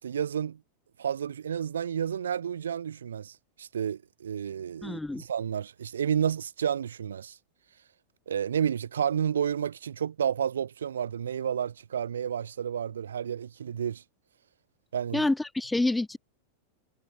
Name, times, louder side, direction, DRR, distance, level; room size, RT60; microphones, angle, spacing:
voice 1, 0.0-0.6 1.0-7.4 8.3-14.0 14.9-15.2, right 8 dB, 65° right, 5.4 m, -31 dB
voice 2, 4.8-5.2 15.1-16.2, left 2 dB, 5° left, 2.3 m, -27 dB
figure-of-eight pair, 90°, 0 cm